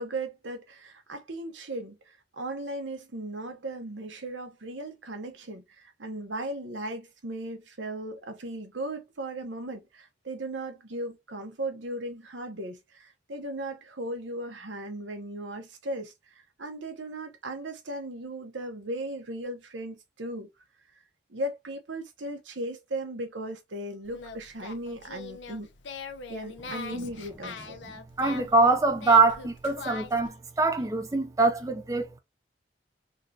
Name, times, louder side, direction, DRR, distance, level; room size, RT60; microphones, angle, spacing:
voice 1, 0.0-20.5 21.3-25.7 26.3-27.8, right 1 dB, 90° right, 1.0 m, -37 dB
Singing, 24.0-30.3, left 4 dB, 80° left, 0.6 m, -42 dB
voice 2, 28.2-32.2, right 3 dB, 15° right, 0.5 m, -23 dB
3.8 x 2.5 x 2.7 m
head